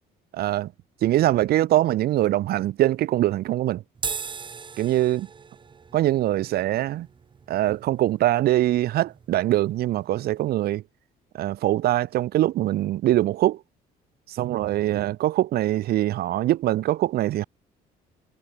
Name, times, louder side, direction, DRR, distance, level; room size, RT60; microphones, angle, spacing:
voice 1, 0.3-0.7 1.0-3.8 4.8-5.3 5.9-7.1 7.5-10.8 11.3-13.6 14.3-17.4, right 14 dB, 65° right, 1.1 m, -23 dB
sound 1, 3.9-10.5, right 5 dB, 30° right, 1.2 m, -40 dB
cardioid pair, 110°, 17 cm